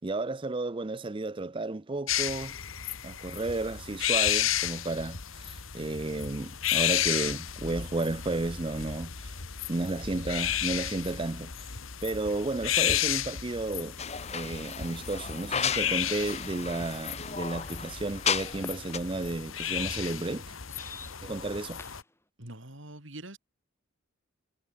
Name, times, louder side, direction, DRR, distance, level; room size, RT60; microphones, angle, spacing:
voice 1, 0.0-2.6 3.0-9.3 9.7-11.7 12.0-14.0 14.3-20.6 21.2-21.8, right 2 dB, 25° right, 0.5 m, -33 dB
sound 1, 2.1-22.0, left 10 dB, 85° left, 1.8 m, -33 dB
sound 2, 14.0-18.7 18.9-19.0, left 7 dB, 30° left, 1.2 m, -34 dB
sound 3, 16.2-22.2, left 2 dB, 10° left, 7.7 m, -51 dB
voice 2, 22.4-23.4, right 1 dB, 65° right, 5.0 m, -44 dB
head